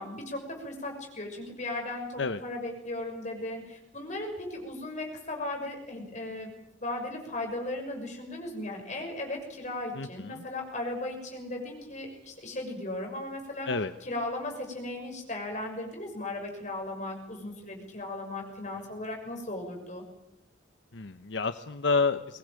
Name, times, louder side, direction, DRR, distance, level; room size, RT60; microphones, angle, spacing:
voice 1, 0.0-6.5 6.8-13.7 14.0-20.0, left 2 dB, 40° left, 2 dB, 6.3 m, -36 dB
voice 2, 9.9-10.4 13.7-13.9 20.9-22.4, left 4 dB, 70° left, 10 dB, 0.9 m, -29 dB
22.0 x 19.5 x 9.0 m, 0.85 s
head